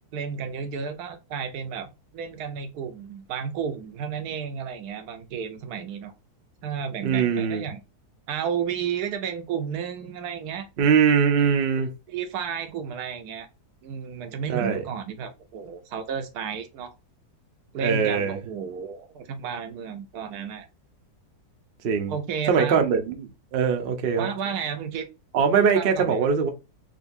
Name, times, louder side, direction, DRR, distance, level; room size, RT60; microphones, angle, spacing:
voice 1, 0.1-1.9 2.1-6.1 6.6-7.8 8.3-10.7 12.1-13.5 13.8-16.9 17.7-20.7 22.1-22.8 24.2-25.1 25.7-26.3, right 7 dB, 75° right, 1.1 m, -32 dB
voice 2, 7.0-7.6 10.8-11.9 14.5-14.8 17.8-18.4 21.8-22.1 22.5-24.3 25.3-26.5, right 6 dB, 55° right, 0.6 m, -22 dB
3.8 x 2.6 x 2.6 m
omnidirectional pair, 1.7 m